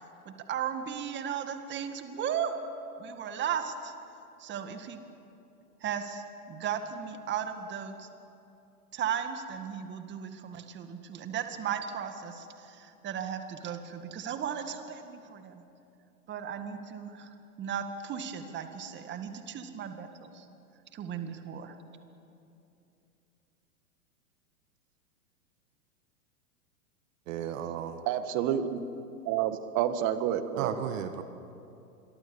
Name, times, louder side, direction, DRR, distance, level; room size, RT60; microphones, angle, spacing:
voice 1, 0.3-2.5 3.0-3.9 4.4-5.0 5.8-8.1 8.9-15.6 16.3-17.3 17.6-20.5 20.9-21.7, right 8 dB, 25° right, 7 dB, 1.9 m, -36 dB
voice 2, 27.3-28.0 30.6-31.2, right 9 dB, 55° right, 8 dB, 1.6 m, -34 dB
voice 3, 28.1-28.8 29.3-30.7, right 10 dB, 40° right, 10 dB, 1.8 m, -29 dB
26.5 x 23.0 x 7.1 m, 2.8 s
hypercardioid pair, 120°, 45 cm